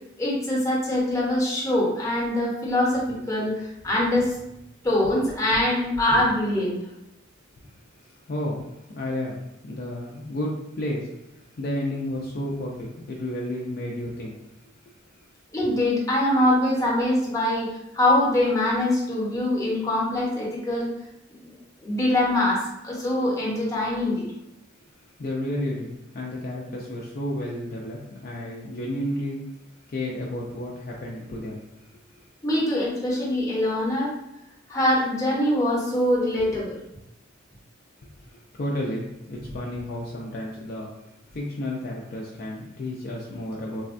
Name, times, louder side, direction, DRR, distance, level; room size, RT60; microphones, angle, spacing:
voice 1, 0.2-4.4 4.8-6.8 15.5-20.9 21.4-21.6 21.8-24.2 32.4-34.1 34.7-36.8, left 1 dB, 15° left, -5 dB, 0.7 m, -23 dB
voice 2, 8.3-8.7 8.9-14.4 25.2-25.9 26.1-29.4 29.9-31.6 32.1-32.3 38.3-43.8, left 1 dB, 45° left, -3 dB, 0.4 m, -32 dB
3.3 x 2.1 x 2.5 m, 0.88 s
head